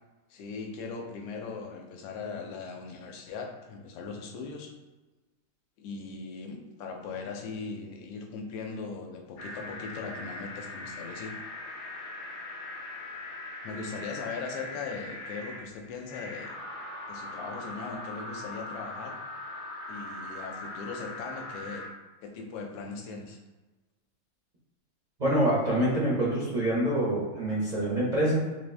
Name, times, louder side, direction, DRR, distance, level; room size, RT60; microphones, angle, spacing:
voice 1, 0.3-4.7 5.8-11.3 13.6-16.5 17.1-19.2 19.9-21.8 22.2-23.4, left 4 dB, 85° left, 2 dB, 1.6 m, -39 dB
sound 1, 9.4-21.9, left 2 dB, 70° left, 1.2 m, -41 dB
voice 2, 25.2-28.4, right 1 dB, 85° right, -8 dB, 0.3 m, -26 dB
4.0 x 2.6 x 3.3 m, 1.2 s
omnidirectional pair, 2.4 m